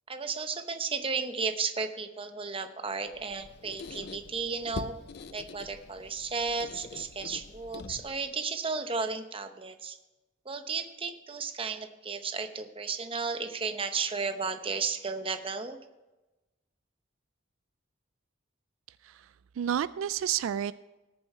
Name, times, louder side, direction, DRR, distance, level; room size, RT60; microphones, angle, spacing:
voice 1, 0.1-5.0 5.3-10.0 10.4-15.8, right 4 dB, 25° right, 8 dB, 0.8 m, -34 dB
Squeak, 3.1-8.3, left 4 dB, 55° left, 0.5 m, -44 dB
voice 2, 18.9-20.7, right 9 dB, 80° right, 16 dB, 0.3 m, -31 dB
18.5 x 7.0 x 4.4 m, 1.1 s
head